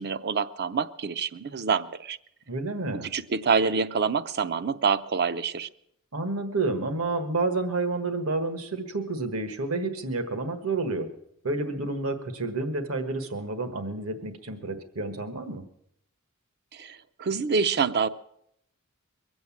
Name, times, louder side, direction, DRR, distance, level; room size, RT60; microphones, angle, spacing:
voice 1, 0.0-2.2 2.9-5.7 16.7-18.1, right 5 dB, 50° right, 14 dB, 0.6 m, -26 dB
voice 2, 2.5-3.1 6.1-11.1 11.4-15.6, right 3 dB, 75° right, 8 dB, 1.4 m, -30 dB
22.5 x 7.9 x 7.2 m, 0.74 s
head